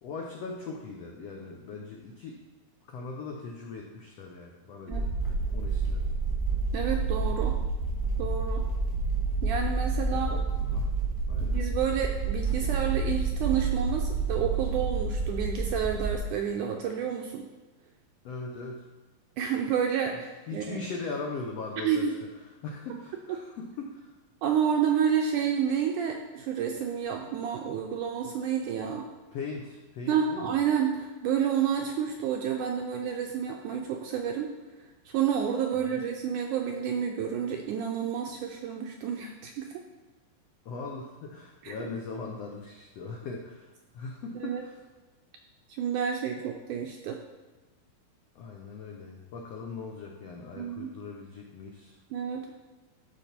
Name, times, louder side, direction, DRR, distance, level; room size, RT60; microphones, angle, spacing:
voice 1, 0.0-2.4 2.9-5.1 5.5-6.0 10.1-10.9 11.3-11.6 18.2-18.8 20.5-22.1 22.6-24.1 29.3-30.6 35.9-36.0 40.6-43.7 43.9-44.8 48.3-52.0, left 4 dB, 80° left, 0 dB, 1.4 m, -39 dB
sound 1, 4.9-16.1, right 4 dB, 15° left, 0.8 m, -29 dB
voice 2, 6.7-7.6 8.2-8.6 9.4-10.3 11.4-17.5 19.4-20.8 21.8-22.1 24.4-29.1 30.1-34.5 35.1-39.7 41.6-41.7 44.4-44.6 45.7-47.2 50.6-50.9 52.1-52.5, right 8 dB, 80° right, 2 dB, 1.9 m, -29 dB
14.0 x 5.3 x 4.3 m, 1.2 s
omnidirectional pair, 4.3 m